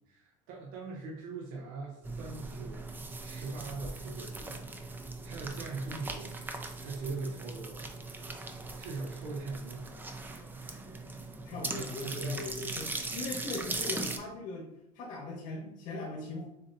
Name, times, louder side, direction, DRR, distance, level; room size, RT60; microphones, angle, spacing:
voice 1, 0.0-2.8 3.2-4.6 5.2-6.3 6.8-7.8 8.8-9.9 11.6-12.6, right 3 dB, 75° right, -2 dB, 0.9 m, -41 dB
sound 1, 2.0-14.2, right 3 dB, 15° right, 0.4 m, -40 dB
voice 2, 11.4-14.7 14.9-16.4, left 2 dB, 75° left, -5 dB, 1.3 m, -39 dB
6.9 x 2.7 x 2.7 m, 0.85 s
cardioid pair, 135°, 15 cm